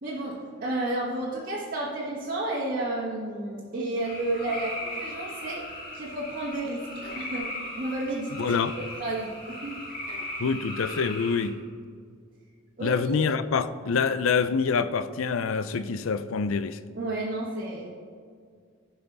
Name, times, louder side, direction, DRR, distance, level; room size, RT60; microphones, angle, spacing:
voice 1, 0.0-5.7 5.9-6.9 7.2-7.5 7.8-9.8 12.8-13.2 16.9-17.9, right 2 dB, 45° right, 1.5 m, -31 dB
sound 1, 4.0-11.5, left 1 dB, 45° left, 2.2 m, -38 dB
voice 2, 8.4-8.7 10.4-11.5 12.8-16.8, left 5 dB, 85° left, 0.5 m, -26 dB
15.5 x 5.6 x 4.0 m
head